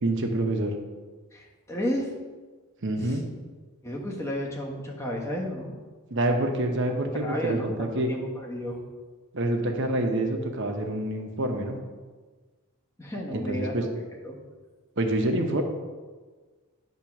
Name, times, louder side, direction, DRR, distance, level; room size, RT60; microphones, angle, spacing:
voice 1, 0.0-0.7 2.8-3.2 6.1-8.1 9.3-11.8 13.3-13.9 15.0-15.6, right 1 dB, 55° right, 3 dB, 1.0 m, -27 dB
voice 2, 1.3-2.1 3.0-3.2 3.8-5.7 7.1-8.8 13.0-13.9 14.2-14.4, equal, 15° left, -1 dB, 1.3 m, -32 dB
10.0 x 3.7 x 6.0 m, 1.4 s
head